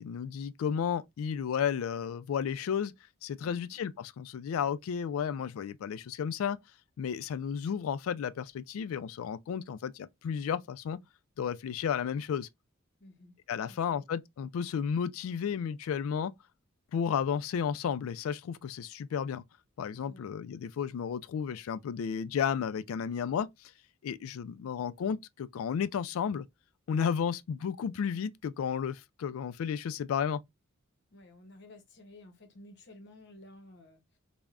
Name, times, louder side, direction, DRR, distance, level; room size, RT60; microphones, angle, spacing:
voice 1, 0.0-2.9 3.2-6.6 7.0-11.0 11.4-12.5 13.5-16.3 16.9-19.4 19.8-23.7 24.0-26.4 26.9-30.4, left 7 dB, 75° left, 0.3 m, -33 dB
voice 2, 3.5-3.8 13.0-14.0 20.0-20.3 31.1-34.2, left 1 dB, 55° left, 0.8 m, -54 dB
3.4 x 2.1 x 2.4 m
head